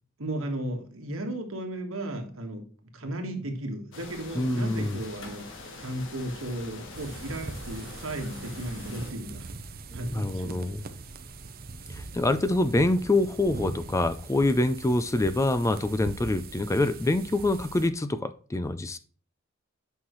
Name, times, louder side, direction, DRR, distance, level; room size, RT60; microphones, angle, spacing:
voice 1, 0.2-2.6 2.9-5.5 5.8-9.5 9.9-10.5, right 1 dB, 75° right, 4 dB, 1.5 m, -35 dB
sound 1, 3.9-9.1, left 2 dB, 65° left, 1.3 m, -44 dB
voice 2, 4.4-5.0 10.1-10.8 11.9-19.0, left 2 dB, 15° left, 12 dB, 0.4 m, -25 dB
sound 2, 6.9-17.9, right 3 dB, 45° right, 0.7 m, -41 dB
8.6 x 5.6 x 3.1 m, 0.42 s
head